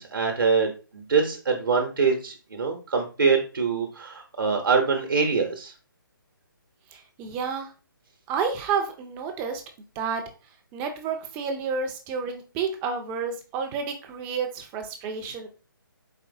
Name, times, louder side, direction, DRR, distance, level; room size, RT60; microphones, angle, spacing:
voice 1, 0.0-5.7, right 5 dB, 70° right, 2 dB, 0.8 m, -24 dB
voice 2, 6.9-7.7 8.3-9.6 10.0-10.2 10.7-15.5, right 5 dB, 15° right, 5 dB, 0.4 m, -30 dB
4.2 x 3.1 x 2.5 m, 0.33 s
figure-of-eight pair, 145°, 12 cm